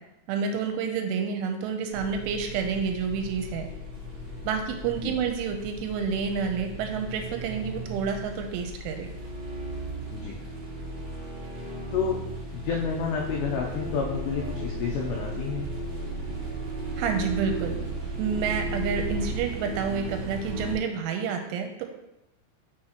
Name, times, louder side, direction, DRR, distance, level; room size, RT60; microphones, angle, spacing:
voice 1, 0.3-3.7 4.4-9.1 17.0-17.7 18.2-21.9, right 6 dB, 85° right, 4 dB, 3.0 m, -29 dB
sound 1, 1.9-20.8, right 1 dB, 30° right, 1.8 m, -35 dB
voice 2, 12.5-15.7, left 6 dB, 90° left, -1 dB, 2.4 m, -30 dB
6.4 x 6.0 x 2.9 m, 0.89 s
omnidirectional pair, 5.7 m